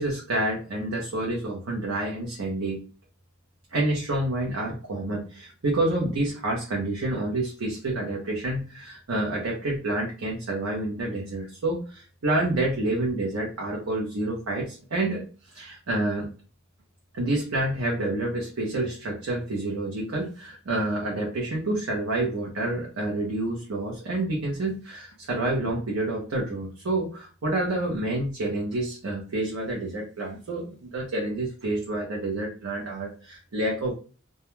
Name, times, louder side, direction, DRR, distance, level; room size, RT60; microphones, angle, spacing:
voice 1, 0.0-2.8 3.7-15.2 15.5-16.3 17.1-33.9, right 2 dB, 80° right, -2 dB, 0.6 m, -28 dB
2.2 x 2.1 x 2.9 m, 0.38 s
head